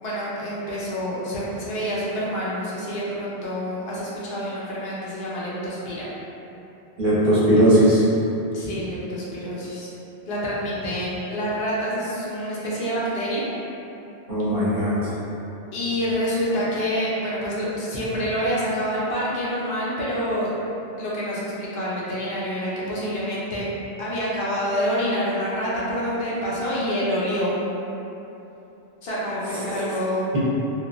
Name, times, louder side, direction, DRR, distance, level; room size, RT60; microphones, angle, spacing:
voice 1, 0.0-6.1 8.5-9.9 10.3-13.5 15.7-20.5 21.0-23.7 24.0-27.6 29.0-30.4, equal, 70° left, -7 dB, 0.8 m, -27 dB
voice 2, 7.0-8.0 14.3-15.1 29.7-29.8, right 1 dB, 55° right, -10 dB, 0.9 m, -18 dB
2.9 x 2.2 x 2.4 m, 3.0 s
omnidirectional pair, 1.1 m